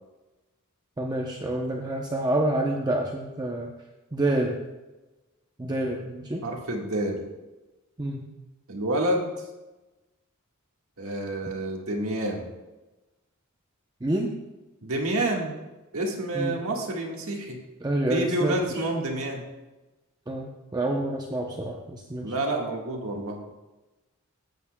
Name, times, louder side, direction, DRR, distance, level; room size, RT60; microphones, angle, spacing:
voice 1, 1.0-3.7 4.1-4.6 5.6-6.4 8.0-8.3 14.0-14.3 16.3-16.6 17.8-18.9 20.3-22.4, right 1 dB, 20° right, 0 dB, 0.7 m, -28 dB
voice 2, 6.4-7.2 8.7-9.3 11.0-12.5 14.8-15.5 15.9-17.6 18.1-19.4 22.2-23.5, right 1 dB, 70° right, 0 dB, 1.6 m, -28 dB
14.0 x 8.4 x 2.2 m, 1.1 s
head